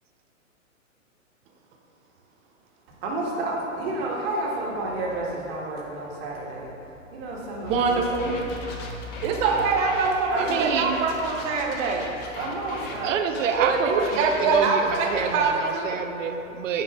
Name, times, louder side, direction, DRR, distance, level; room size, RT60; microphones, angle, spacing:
voice 1, 3.0-6.7 7.1-8.0 9.4-9.6 10.3-10.7 12.4-13.2, right 2 dB, 45° right, -3 dB, 1.7 m, -30 dB
sound 1, 7.6-13.0 13.3-15.5, left 3 dB, 25° left, 0.7 m, -39 dB
voice 2, 7.6-8.3 9.2-12.1 13.6-16.3, right 4 dB, 15° right, 1 dB, 0.5 m, -24 dB
voice 3, 10.3-11.0 13.0-16.8, right 6 dB, 70° right, 7 dB, 0.7 m, -27 dB
10.0 x 4.6 x 3.6 m, 2.9 s
hypercardioid pair, 130°, 40 cm